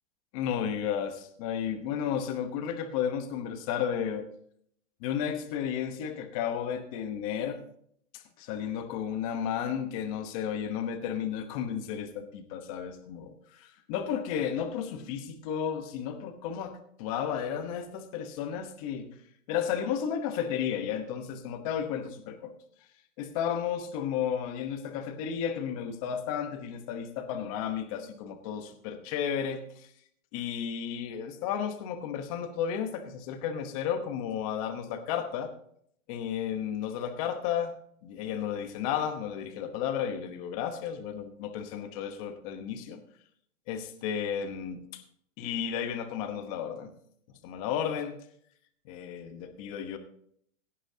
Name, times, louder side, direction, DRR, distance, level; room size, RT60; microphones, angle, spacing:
voice 1, 0.3-4.3 5.0-7.6 8.1-19.1 19.5-22.5 23.2-29.9 30.3-35.5 36.1-37.7 38.0-43.0 43.7-45.0 45.4-46.9 47.4-48.2 48.8-50.0, left 8 dB, 30° left, 8 dB, 1.0 m, -33 dB
17.0 x 9.8 x 2.8 m, 0.66 s
hypercardioid pair, 165°, 38 cm